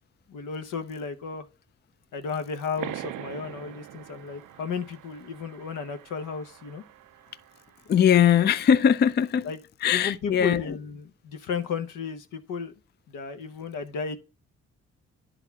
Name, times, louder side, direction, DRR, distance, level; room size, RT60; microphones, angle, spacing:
voice 1, 0.3-1.4 2.1-6.8 9.4-9.6 9.9-12.7 13.1-14.2, left 5 dB, 85° left, 0.9 m, -34 dB
sound 1, 2.8-8.0, right 13 dB, 75° right, 0.5 m, -43 dB
voice 2, 7.9-9.5 9.8-10.8, left 8 dB, 35° left, 0.4 m, -20 dB
10.5 x 4.0 x 3.5 m
cardioid pair, 60°, 31 cm